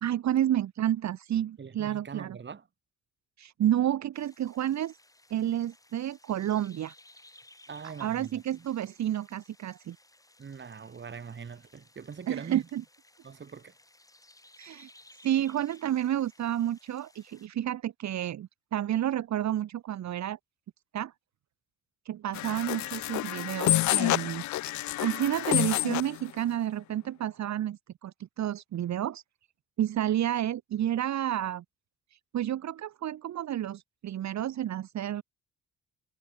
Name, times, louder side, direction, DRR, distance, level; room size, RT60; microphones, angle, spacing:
voice 1, 0.0-2.4 3.4-5.0 5.3-6.9 8.0-10.0 12.3-12.8 14.6-14.9 15.2-20.4 20.9-21.1 22.0-24.4 25.0-29.2 29.8-31.6 32.3-35.2, right 11 dB, 65° right, 1.6 m, -30 dB
voice 2, 1.6-2.6 7.7-8.7 10.4-12.6 13.2-13.7, right 6 dB, 40° right, 2.8 m, -43 dB
sound 1, 4.1-17.5, left 2 dB, 10° left, 5.7 m, -59 dB
sound 2, 22.3-26.2, left 16 dB, 70° left, 0.5 m, -28 dB
cardioid pair, 90°, 30 cm